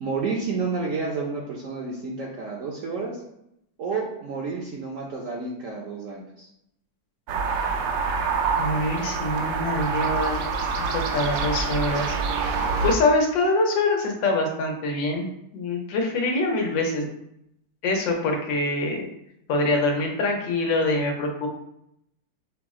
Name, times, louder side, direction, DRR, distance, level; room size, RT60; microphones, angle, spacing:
voice 1, 0.0-3.2 3.8-6.5, right 4 dB, 65° right, -2 dB, 0.8 m, -30 dB
sound 1, 7.3-13.0, right 5 dB, 85° right, 1.3 m, -26 dB
voice 2, 8.6-12.1 12.8-15.3 15.5-17.1 17.8-19.1 19.5-21.5, left 2 dB, 85° left, 1 dB, 1.5 m, -24 dB
5.8 x 2.0 x 3.6 m, 0.79 s
omnidirectional pair, 2.0 m